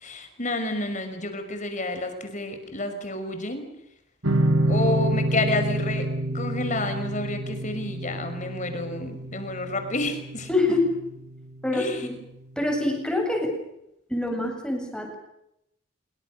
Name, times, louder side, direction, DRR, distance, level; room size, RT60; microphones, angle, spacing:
voice 1, 0.0-3.7 4.7-10.5 11.7-12.1, left 2 dB, 35° left, 7 dB, 5.6 m, -30 dB
sound 1, 4.2-11.4, right 1 dB, 75° right, 4.0 m, -27 dB
voice 2, 10.5-11.0 11.6-12.1 12.6-13.5 14.1-15.1, left 2 dB, 5° left, 2 dB, 7.6 m, -25 dB
27.0 x 24.0 x 6.7 m, 0.81 s
head